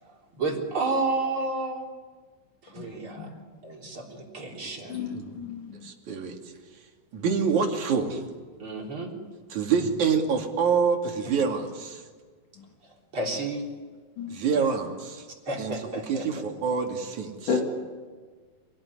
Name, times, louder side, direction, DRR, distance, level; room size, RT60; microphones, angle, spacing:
voice 1, 0.0-1.8 2.6-3.3 3.6-5.0 8.6-9.1 11.2-11.3 13.1-13.6 14.5-14.8 15.5-16.4, right 2 dB, 35° right, 0 dB, 4.3 m, -31 dB
voice 2, 4.9-5.9 7.2-7.3 12.6-12.7 14.2-14.4 17.5-17.6, left 6 dB, 60° left, 1 dB, 4.2 m, -32 dB
voice 3, 5.8-6.4 7.1-8.2 9.5-12.0 14.3-15.2 15.6-15.7 16.1-17.3, right 6 dB, 55° right, 2 dB, 3.8 m, -26 dB
27.5 x 19.0 x 10.0 m, 1.5 s
omnidirectional pair, 4.1 m